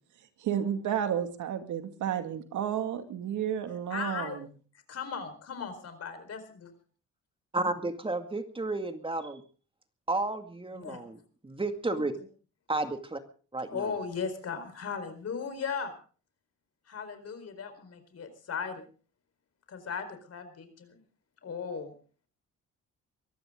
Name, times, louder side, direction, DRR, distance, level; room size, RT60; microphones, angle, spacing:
voice 1, 0.4-4.5, right 9 dB, 75° right, 8 dB, 2.3 m, -32 dB
voice 2, 3.9-4.4 4.9-6.7 10.7-11.0 11.9-12.0 13.7-15.9 16.9-18.9 19.7-21.0 21.4-21.9, left 6 dB, 55° left, 9 dB, 4.5 m, -37 dB
voice 3, 7.5-9.4 10.1-11.2 11.4-12.1 12.7-13.2 13.5-13.9, right 2 dB, 15° right, 7 dB, 2.2 m, -32 dB
23.0 x 15.0 x 3.8 m, 0.39 s
cardioid pair, 90°, 30 cm